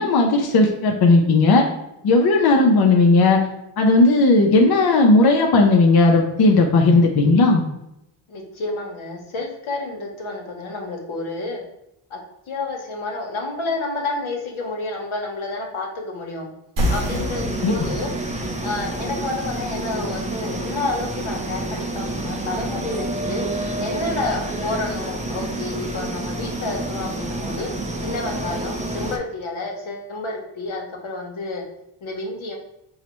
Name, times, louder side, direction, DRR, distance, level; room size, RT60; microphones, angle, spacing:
voice 1, 0.0-1.7 2.0-3.4 3.8-7.6 17.6-17.7, left 2 dB, 50° left, 1 dB, 0.5 m, -15 dB
voice 2, 8.3-11.6 12.1-12.2 12.5-16.5 16.9-18.1 18.6-27.7 28.0-31.6 32.0-32.6, left 2 dB, 75° left, 1 dB, 0.9 m, -30 dB
sound 1, 16.8-29.2, right 2 dB, 15° right, 0.4 m, -29 dB
sound 2, 16.8-21.9, equal, 75° right, 0.9 m, -31 dB
4.7 x 2.1 x 2.9 m, 0.84 s
cardioid pair, 80°, 49 cm